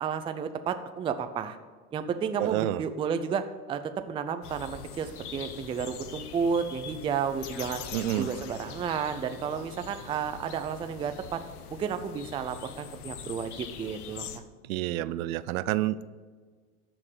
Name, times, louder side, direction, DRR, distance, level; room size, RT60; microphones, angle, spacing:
voice 1, 0.0-1.6 1.9-7.8 8.2-11.4 11.7-14.4, right 6 dB, 15° right, 9 dB, 0.4 m, -32 dB
voice 2, 2.4-2.8 7.9-8.3 14.7-16.1, right 14 dB, 65° right, 16 dB, 0.6 m, -29 dB
sound 1, 4.4-14.4, left 7 dB, 85° left, 1.1 m, -44 dB
sound 2, 7.4-9.5, left 9 dB, 50° left, 1.2 m, -43 dB
13.0 x 4.5 x 8.1 m, 1.5 s
supercardioid pair, 120°, 44 cm